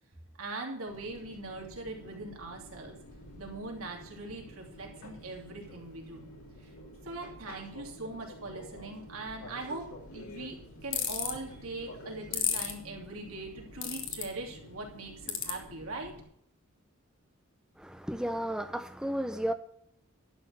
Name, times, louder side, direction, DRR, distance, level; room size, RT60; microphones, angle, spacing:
voice 1, 0.4-2.9 3.3-6.2 7.0-9.9 10.1-10.6 10.8-16.1, right 2 dB, 80° right, 2.9 m, -41 dB
Fixed-wing aircraft airplane, 0.9-16.2, equal, 85° left, 2.8 m, -50 dB
sound 1, 10.9-11.3 12.3-12.7 13.8-14.2 15.3-15.5, left 9 dB, 60° left, 1.7 m, -30 dB
voice 2, 17.8-19.5, right 1 dB, 5° right, 0.7 m, -33 dB
11.5 x 6.6 x 7.0 m
head